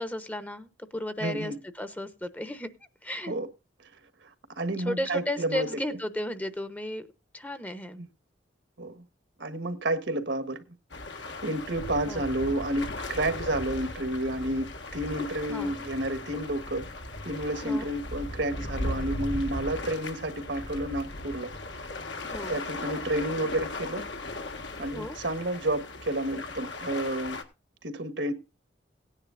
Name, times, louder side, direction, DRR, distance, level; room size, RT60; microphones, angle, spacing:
voice 1, 0.0-2.7 3.0-3.3 4.8-7.1 7.3-8.0 12.1-12.2 15.5-15.7 17.6-17.9 22.3-22.6 24.9-25.2, left 1 dB, 10° left, 0.8 m, -34 dB
voice 2, 1.2-1.6 3.2-3.5 4.2-4.3 4.5-5.7 8.0-8.1 8.8-9.0 9.4-10.6 11.4-16.9 17.2-21.5 22.5-24.1 24.8-27.4 27.8-28.3, right 1 dB, 75° right, 1.5 m, -30 dB
sound 1, 10.9-27.4, left 2 dB, 75° left, 1.7 m, -37 dB
17.5 x 10.0 x 2.5 m
head